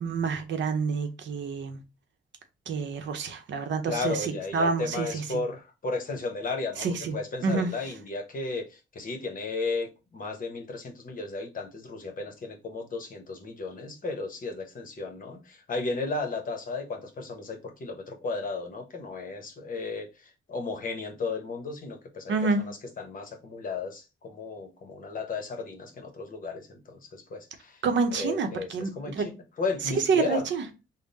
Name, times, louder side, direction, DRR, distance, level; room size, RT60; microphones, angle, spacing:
voice 1, 0.0-1.8 2.7-5.2 6.8-7.2 7.4-7.7 22.3-22.6 27.8-29.3 30.1-30.6, right 4 dB, 70° right, 0.7 m, -28 dB
voice 2, 3.9-27.8 28.1-30.4, left 3 dB, 45° left, 0.9 m, -34 dB
3.6 x 2.1 x 3.9 m
cardioid pair, 120°, 20 cm